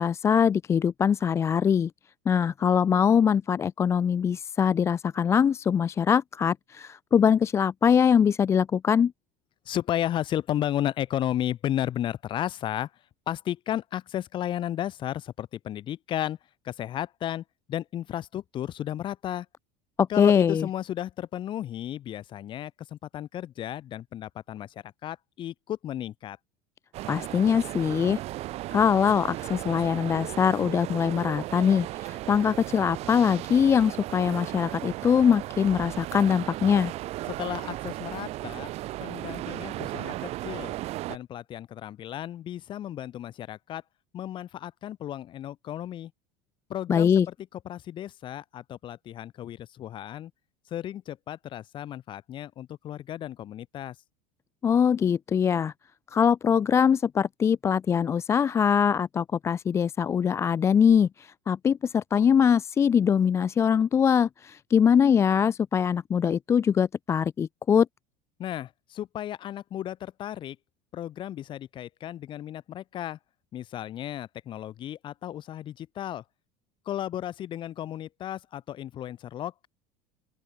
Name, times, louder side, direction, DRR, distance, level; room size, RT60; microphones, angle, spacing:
voice 1, 0.0-1.9 2.3-9.1 20.0-20.7 27.1-28.2 28.7-36.9 46.9-47.3 54.6-55.7 56.1-67.9, left 7 dB, 20° left, 0.4 m, -22 dB
voice 2, 9.7-12.9 13.3-16.4 16.6-19.5 20.1-24.7 25.0-26.4 37.3-38.7 39.0-40.7 41.1-43.8 44.1-46.1 46.7-50.3 50.7-54.0 68.4-70.6 70.9-73.2 73.5-76.2 76.9-79.7, left 11 dB, 35° left, 2.4 m, -34 dB
sound 1, 26.9-41.2, right 16 dB, 45° right, 3.9 m, -36 dB
open air
cardioid pair, 160°, 15 cm